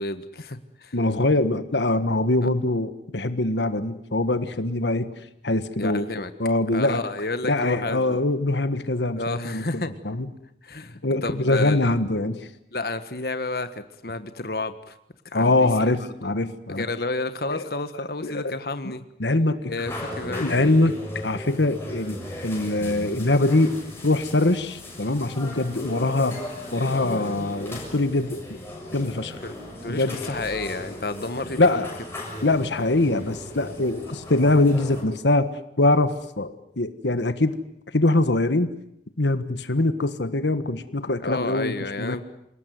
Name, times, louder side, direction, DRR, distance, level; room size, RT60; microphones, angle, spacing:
voice 1, 0.0-0.9 5.8-6.3 6.7-8.2 9.2-9.9 10.6-11.8 12.7-15.0 15.2-15.5 16.0-16.3 16.7-19.0 19.7-20.6 29.4-29.5 29.8-31.6 41.2-42.2, left 2 dB, 60° left, 10 dB, 1.5 m, -31 dB
voice 2, 0.9-5.1 5.4-6.0 6.4-7.0 7.4-10.3 11.0-12.5 15.3-16.9 17.5-17.6 18.2-18.5 19.2-19.7 20.4-22.2 22.4-23.8 24.0-26.4 26.7-28.4 28.9-29.4 29.9-30.2 31.6-31.9 32.4-35.5 35.8-37.6 37.9-38.7 39.2-42.2, left 2 dB, 90° left, 11 dB, 1.5 m, -23 dB
sound 1, 19.8-35.0, left 1 dB, 15° left, 6.9 m, -37 dB
28.0 x 18.5 x 9.5 m, 0.80 s
head